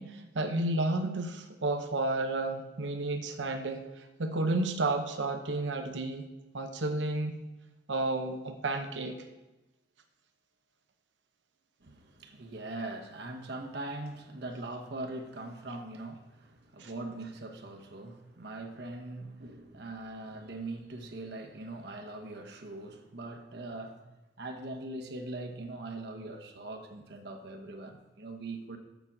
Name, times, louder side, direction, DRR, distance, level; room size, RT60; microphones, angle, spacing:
voice 1, 0.0-3.8 4.2-6.3 6.5-7.4 7.9-9.2 16.8-16.9, right 2 dB, 90° right, 0.8 m, -31 dB
voice 2, 11.8-24.1 24.4-28.8, right 2 dB, 65° right, 1.1 m, -41 dB
7.1 x 6.7 x 7.3 m
head